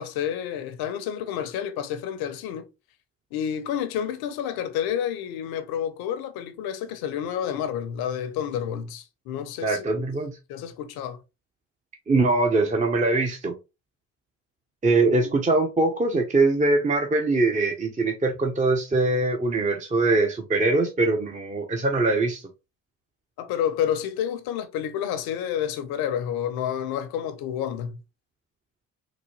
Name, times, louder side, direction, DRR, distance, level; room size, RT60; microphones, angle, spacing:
voice 1, 0.0-2.7 3.3-9.9 10.5-11.2 15.0-15.3 23.4-28.0, left 9 dB, 65° left, 0.8 m, -29 dB
voice 2, 9.6-10.4 12.1-13.6 14.8-22.4, right 2 dB, 20° right, 0.7 m, -22 dB
3.9 x 2.2 x 3.1 m
hypercardioid pair, 60°, 40 cm